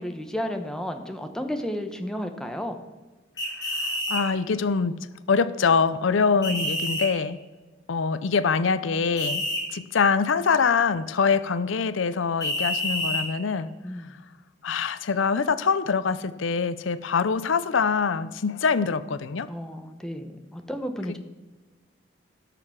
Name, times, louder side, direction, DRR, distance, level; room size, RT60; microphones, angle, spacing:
voice 1, 0.0-2.8 6.4-6.6 13.8-14.1 19.5-21.2, equal, 5° left, 5 dB, 0.9 m, -32 dB
sound 1, 3.4-4.2 6.4-7.1 9.2-9.6 12.4-13.2, left 1 dB, 20° left, 2.9 m, -28 dB
voice 2, 3.8-5.0 5.3-7.4 7.9-9.4 9.7-13.7 14.6-19.5, left 5 dB, 85° left, 14 dB, 0.5 m, -24 dB
16.5 x 6.6 x 5.8 m, 1.2 s
head